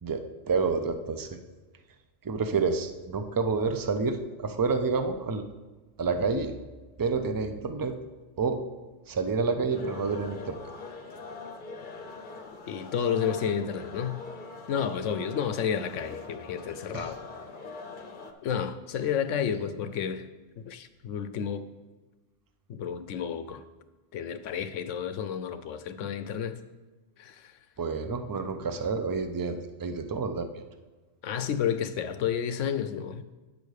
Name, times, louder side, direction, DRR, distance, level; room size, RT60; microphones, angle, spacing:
voice 1, 0.0-1.4 2.2-5.4 6.0-6.5 7.0-8.0 8.4-8.6 9.1-10.6 16.9-17.1 27.8-30.6, right 4 dB, 30° right, 0.4 m, -29 dB
sound 1, 9.7-18.3, left 4 dB, 45° left, 0.9 m, -43 dB
voice 2, 12.7-14.2 14.7-17.2 18.4-20.3 20.6-21.7 22.7-23.6 24.1-26.6 27.2-27.5 31.2-33.2, left 8 dB, 80° left, 1.0 m, -31 dB
9.1 x 5.2 x 6.5 m
omnidirectional pair, 1.3 m